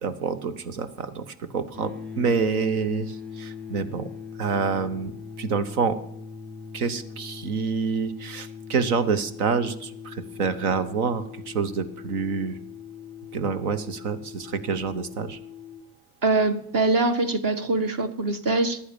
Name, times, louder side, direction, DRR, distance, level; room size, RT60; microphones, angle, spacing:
voice 1, 0.0-4.1 4.4-6.0 6.7-12.6 13.3-15.4, right 5 dB, 80° right, 14 dB, 1.0 m, -27 dB
sound 1, 1.7-15.8, left 6 dB, 25° right, 3.3 m, -40 dB
voice 2, 16.2-18.8, right 2 dB, 50° right, 8 dB, 1.6 m, -23 dB
14.5 x 10.5 x 7.0 m, 0.69 s
hypercardioid pair, 55°, 43 cm